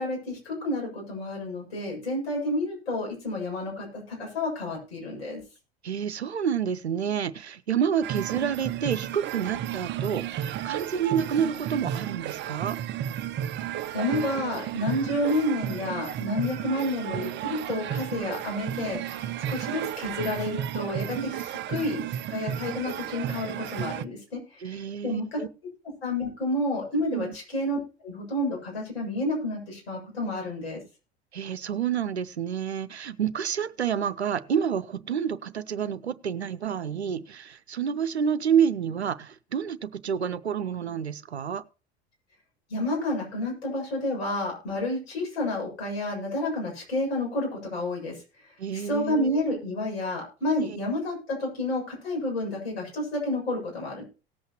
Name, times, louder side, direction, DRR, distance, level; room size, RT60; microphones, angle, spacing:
voice 1, 0.0-5.4 13.9-22.0 22.3-24.8 25.0-25.4 26.0-27.8 28.0-30.8 42.7-48.2 48.7-54.0, left 1 dB, 70° left, 7.5 m, -30 dB
voice 2, 5.8-12.8 21.1-21.4 24.6-25.5 27.1-27.3 31.3-41.6 48.6-49.3 50.6-50.8, right 8 dB, 85° right, 0.7 m, -29 dB
sound 1, 8.0-24.0, right 11 dB, 35° right, 0.7 m, -33 dB
18.5 x 8.0 x 3.1 m
figure-of-eight pair, 70°, 32 cm